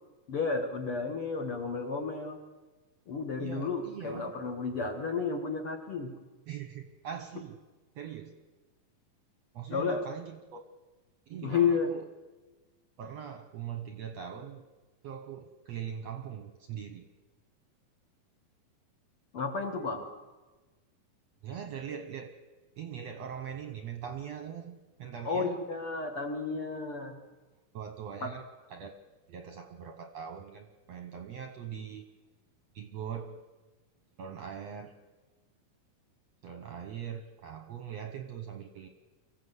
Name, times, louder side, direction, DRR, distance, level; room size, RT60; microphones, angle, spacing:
voice 1, 0.3-2.4 3.1-6.1 9.7-10.0 11.4-11.9 19.3-20.1 25.2-27.2 28.2-28.3, left 5 dB, 50° left, 3 dB, 1.9 m, -32 dB
voice 2, 3.4-4.3 6.5-7.6 8.0-8.3 9.5-10.6 11.3-12.1 13.0-14.6 15.0-17.1 21.4-22.3 22.8-25.6 27.7-28.4 28.7-28.9 29.3-32.1 32.7-33.4 34.2-34.9 36.4-38.9, right 8 dB, 65° right, 7 dB, 1.7 m, -41 dB
25.0 x 15.0 x 8.1 m, 1.2 s
omnidirectional pair, 4.2 m